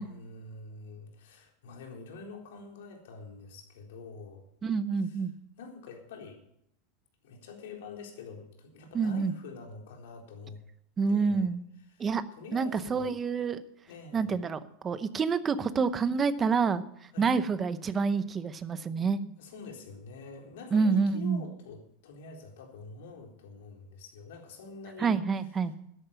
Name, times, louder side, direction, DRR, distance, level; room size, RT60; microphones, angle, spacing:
voice 1, 0.0-4.4 5.0-5.2 5.6-6.4 7.2-10.6 11.1-11.5 11.9-13.1 13.9-14.4 17.1-17.3 19.4-25.2, left 4 dB, 85° left, 2 dB, 4.0 m, -46 dB
voice 2, 4.6-5.3 8.9-9.3 11.0-11.7 12.0-12.2 12.5-13.6 14.1-16.8 17.2-19.2 20.7-21.4 25.0-25.7, right 5 dB, 15° right, 12 dB, 0.7 m, -27 dB
13.5 x 11.0 x 5.6 m, 0.74 s
supercardioid pair, 170°, 0 cm